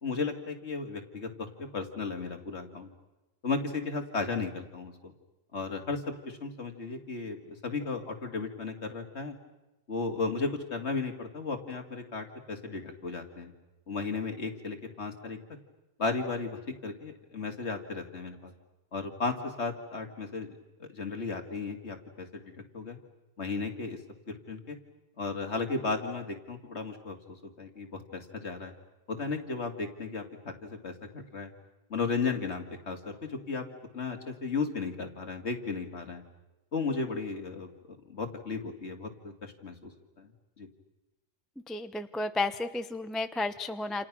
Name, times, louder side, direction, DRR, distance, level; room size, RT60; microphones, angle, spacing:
voice 1, 0.0-2.9 3.4-5.1 5.5-9.3 9.9-13.5 13.9-15.4 16.0-18.5 18.9-23.0 23.4-24.0 24.5-24.8 25.2-27.2 27.6-28.7 29.1-31.5 31.9-33.6 33.9-36.2 36.7-39.9 40.2-40.3 40.6-40.7, left 4 dB, 50° left, 4 dB, 2.6 m, -35 dB
voice 2, 41.7-44.1, left 2 dB, ahead, 9 dB, 0.7 m, -32 dB
28.5 x 28.5 x 6.1 m, 1.0 s
omnidirectional pair, 1.4 m